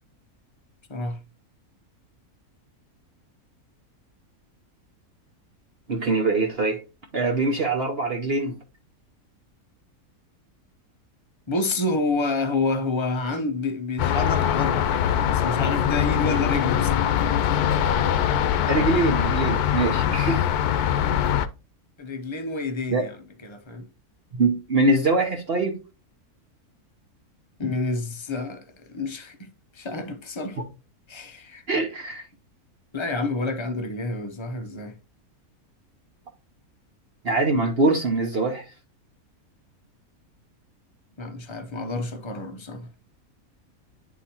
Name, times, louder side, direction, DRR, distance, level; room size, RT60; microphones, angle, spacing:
voice 1, 5.9-6.8 7.1-8.5 18.7-20.5 22.9-23.0 24.4-25.7 31.7-32.2 37.2-38.6, right 3 dB, 50° right, 1.0 m, -23 dB
voice 2, 11.5-17.1 22.0-23.9 27.6-29.5 29.7-30.6 31.1-31.6 32.9-35.0 41.2-42.9, left 2 dB, 30° left, 0.5 m, -29 dB
sound 1, 14.0-21.5, left 9 dB, 90° left, 1.1 m, -22 dB
9.4 x 4.1 x 2.8 m
omnidirectional pair, 1.6 m